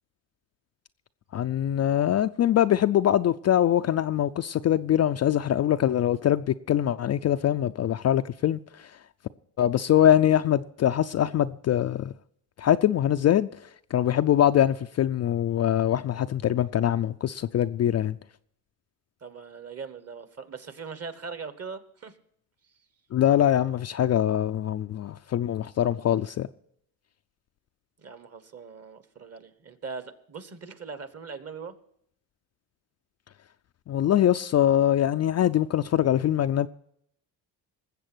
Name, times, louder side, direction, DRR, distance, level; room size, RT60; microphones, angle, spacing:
voice 1, 1.3-8.9 9.6-12.1 12.6-13.5 13.9-18.2 23.1-26.5 33.9-36.7, left 11 dB, 40° left, 0.4 m, -23 dB
voice 2, 19.2-22.2 22.6-22.7 28.0-31.7, right 5 dB, 35° right, 1.3 m, -40 dB
19.5 x 7.6 x 6.1 m
cardioid pair, 90°, 43 cm